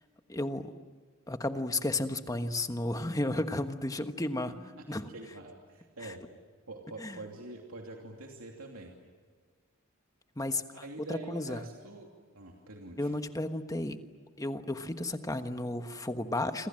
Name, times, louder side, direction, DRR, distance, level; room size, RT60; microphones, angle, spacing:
voice 1, 0.3-0.7 1.3-4.5 4.9-5.1 6.0-6.1 7.0-7.2 10.4-10.8 11.1-11.6 13.0-14.0 14.4-16.7, left 2 dB, 15° left, 8 dB, 1.3 m, -33 dB
voice 2, 4.5-6.2 6.7-8.9 10.7-13.1, right 2 dB, 80° right, 1 dB, 2.9 m, -45 dB
28.5 x 26.0 x 7.7 m, 1.5 s
head